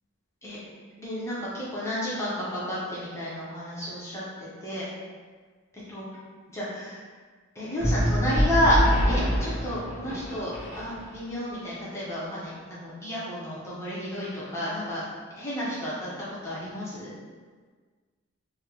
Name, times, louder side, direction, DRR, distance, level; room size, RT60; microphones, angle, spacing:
voice 1, 1.0-4.9 5.9-6.0 6.5-7.0 7.5-8.8 9.1-10.5 10.8-15.0 15.4-17.1, equal, 15° left, -8 dB, 0.6 m, -31 dB
sound 1, 7.8-11.3, equal, 55° right, 1.1 m, -26 dB
3.8 x 2.0 x 2.8 m, 1.5 s
head